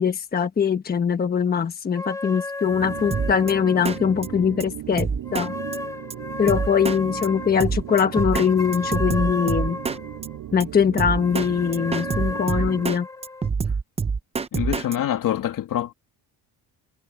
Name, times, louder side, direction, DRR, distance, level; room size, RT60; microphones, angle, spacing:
voice 1, 0.0-5.5 6.4-9.8 10.5-13.1, left 7 dB, 25° left, 1.2 m, -22 dB
sound 1, 1.9-4.7 5.2-10.4 11.0-13.5, left 2 dB, 10° left, 3.0 m, -34 dB
sound 2, 2.6-13.0, right 12 dB, 60° right, 7.7 m, -37 dB
Drum kit, 3.1-3.5 3.9-4.3 4.6-4.7 5.0-5.5 5.7-5.8 6.1-6.2 6.5-7.0 7.2-7.3 7.6-8.5 8.7-10.0 10.2-10.3 10.6-10.7 11.0-11.5 11.7-13.0 13.2-15.0, right 5 dB, 15° right, 0.6 m, -25 dB
voice 2, 14.5-15.9, left 11 dB, 60° left, 2.6 m, -25 dB
cardioid pair, 160°, 37 cm